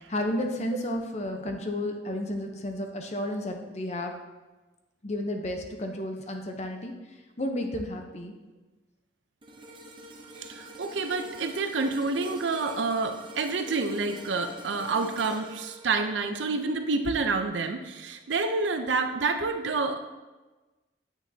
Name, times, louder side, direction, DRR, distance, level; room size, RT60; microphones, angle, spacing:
voice 1, 0.1-4.1 5.0-6.9 7.4-8.3, left 1 dB, 35° left, 4 dB, 0.7 m, -32 dB
sound 1, 9.4-17.8 18.2-18.4, right 1 dB, 25° right, 0.7 m, -46 dB
voice 2, 10.4-20.0, right 3 dB, 80° right, 6 dB, 0.6 m, -28 dB
8.9 x 6.0 x 2.8 m, 1.2 s
head